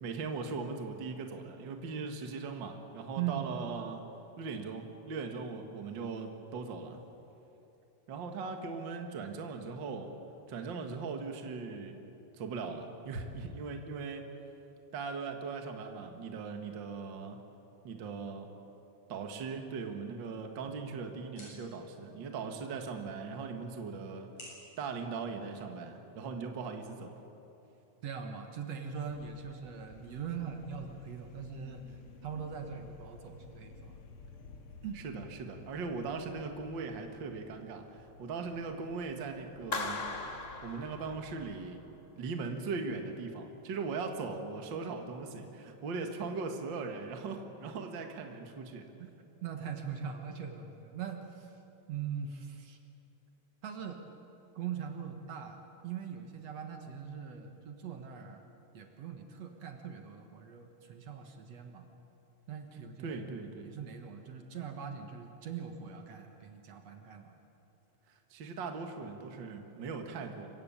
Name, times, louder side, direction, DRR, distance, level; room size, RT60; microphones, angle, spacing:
voice 1, 0.0-4.0 4.4-7.0 8.1-10.1 10.5-12.0 12.3-14.3 14.9-17.4 17.8-18.5 19.1-24.3 24.8-27.2 35.0-40.0 40.6-41.8 42.2-48.9 63.0-63.7 68.1-70.5, right 4 dB, 45° right, 4 dB, 2.0 m, -39 dB
voice 2, 3.2-3.5 28.0-34.0 34.8-35.0 49.0-49.1 49.4-51.5 51.9-52.8 53.6-54.1 54.6-61.9 62.5-63.2 63.6-67.3, right 7 dB, 65° right, 5 dB, 2.4 m, -41 dB
sound 1, 20.1-26.1, left 1 dB, 75° left, 8.7 m, -58 dB
sound 2, 29.1-41.7, left 4 dB, 55° left, 2.1 m, -54 dB
Clapping, 39.7-41.6, left 3 dB, 35° left, 1.0 m, -38 dB
26.5 x 15.5 x 8.8 m, 3.0 s
omnidirectional pair, 3.3 m